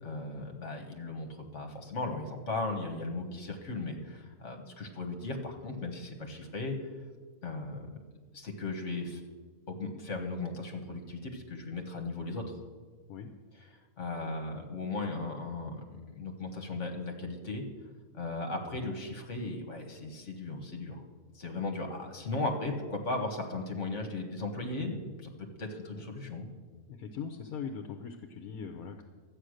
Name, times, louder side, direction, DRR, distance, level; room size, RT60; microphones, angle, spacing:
voice 1, 0.0-6.8 7.4-7.9 8.3-9.2 9.7-12.5 14.0-17.6 18.1-21.0 21.3-26.5, left 2 dB, 55° left, 4 dB, 1.8 m, -37 dB
voice 2, 26.9-29.0, left 6 dB, 85° left, 6 dB, 1.3 m, -40 dB
12.5 x 8.8 x 6.5 m, 1.5 s
omnidirectional pair, 1.5 m